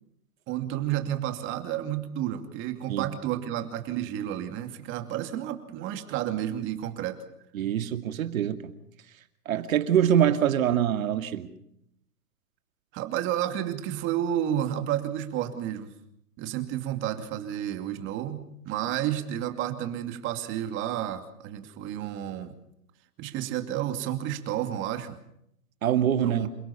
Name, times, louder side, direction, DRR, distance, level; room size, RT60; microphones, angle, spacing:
voice 1, 0.5-7.2 12.9-15.9 16.4-22.5 23.2-25.2 26.2-26.5, right 11 dB, 25° right, 8 dB, 2.5 m, -31 dB
voice 2, 7.5-8.7 9.5-11.5 25.8-26.5, right 10 dB, 60° right, 9 dB, 2.5 m, -24 dB
28.5 x 17.0 x 7.1 m, 0.74 s
hypercardioid pair, 145°, 45 cm